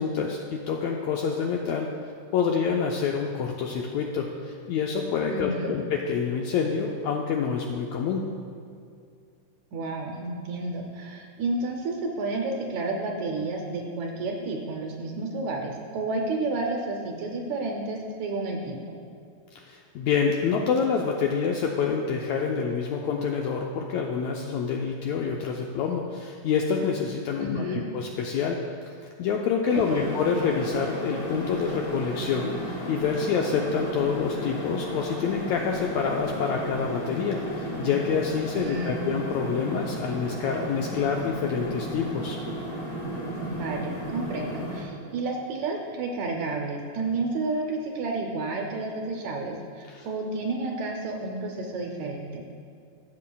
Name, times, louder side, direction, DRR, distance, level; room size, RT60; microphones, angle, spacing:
voice 1, 0.0-1.9 2.3-8.2 19.5-28.6 29.2-42.4 49.9-50.1, left 6 dB, 80° left, 1 dB, 1.6 m, -27 dB
voice 2, 5.3-5.7 9.7-19.0 27.4-27.8 29.9-30.1 38.5-39.0 43.5-52.5, right 3 dB, 75° right, 1 dB, 1.8 m, -31 dB
sound 1, 29.7-44.8, equal, 55° left, 3.2 m, -34 dB
15.5 x 7.5 x 2.3 m, 2.3 s
omnidirectional pair, 3.7 m